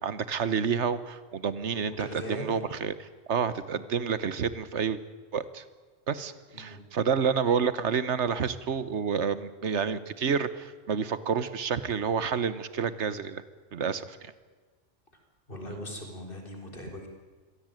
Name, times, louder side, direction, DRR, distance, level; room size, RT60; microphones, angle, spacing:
voice 1, 0.0-5.0 5.3-5.6 6.1-13.4 13.7-14.3, right 6 dB, 70° right, 15 dB, 1.4 m, -29 dB
voice 2, 1.8-2.6 6.5-6.8 15.5-17.1, equal, 50° left, 3 dB, 4.1 m, -39 dB
24.5 x 17.0 x 9.1 m, 1.4 s
omnidirectional pair, 1.2 m